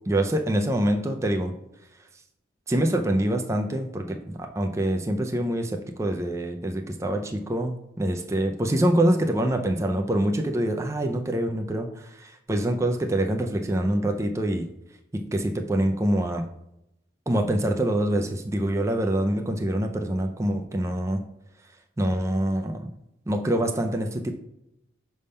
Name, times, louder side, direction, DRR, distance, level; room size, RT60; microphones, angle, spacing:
voice 1, 0.1-1.5 2.7-14.7 15.3-16.5 17.3-21.2 22.0-22.9 23.3-24.3, right 1 dB, 15° right, 4 dB, 0.4 m, -25 dB
5.3 x 3.5 x 5.4 m, 0.84 s
head